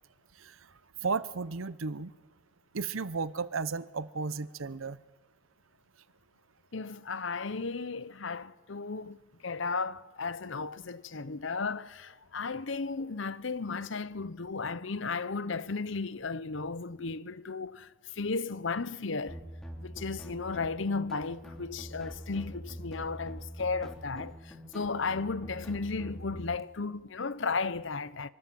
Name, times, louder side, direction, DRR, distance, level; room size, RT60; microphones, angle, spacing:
voice 1, 0.3-2.2 2.7-5.0, right 4 dB, 85° right, 0.8 m, -34 dB
voice 2, 6.7-9.2 9.4-19.4 19.8-28.3, left 4 dB, 70° left, 0.8 m, -34 dB
sound 1, 19.3-26.6, equal, ahead, 3.2 m, -44 dB
25.0 x 24.5 x 7.6 m
head